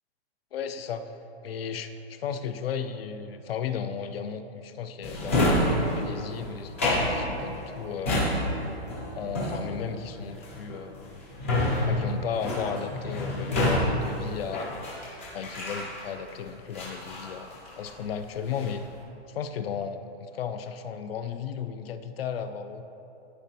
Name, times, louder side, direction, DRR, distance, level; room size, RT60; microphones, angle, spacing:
voice 1, 0.5-1.1 1.4-8.3 9.1-11.2 11.9-15.0 15.3-18.9 19.3-22.8, left 7 dB, 65° left, 10 dB, 0.5 m, -35 dB
Drawer open or close, 5.0-16.3 16.7-18.0 18.3-18.9, left 1 dB, 15° left, 0.4 m, -28 dB
13.0 x 5.1 x 2.8 m, 2.9 s
hypercardioid pair, 180°, 32 cm